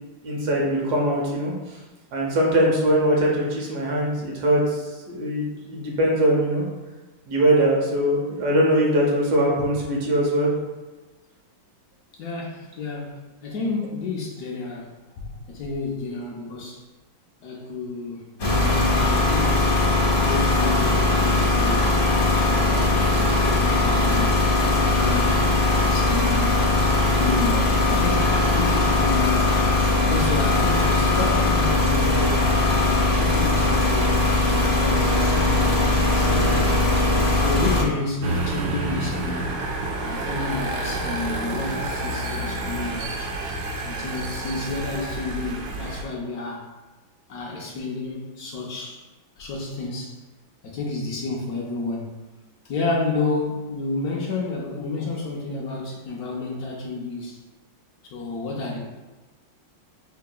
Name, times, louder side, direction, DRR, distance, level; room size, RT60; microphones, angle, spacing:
voice 1, 0.2-1.5 2.1-6.6 7.3-10.5, right 1 dB, 60° right, -2 dB, 1.2 m, -21 dB
voice 2, 12.1-14.9 15.2-16.8 17.4-18.2 18.6-19.8 20.3-21.9 22.5-25.4 25.8-26.6 27.2-29.6 30.0-34.2 34.5-35.8 36.1-37.0 37.4-39.6 40.0-43.3 43.8-46.7 47.3-49.0 49.4-50.2 50.6-52.1 52.6-57.4 58.1-58.8, left 3 dB, 80° left, -2 dB, 0.8 m, -30 dB
sound 1, 18.4-37.8, left 2 dB, 40° left, 1.5 m, -20 dB
sound 2, 38.2-46.0, right 2 dB, 80° right, 0.8 m, -29 dB
5.7 x 2.8 x 2.2 m, 1.2 s
omnidirectional pair, 2.3 m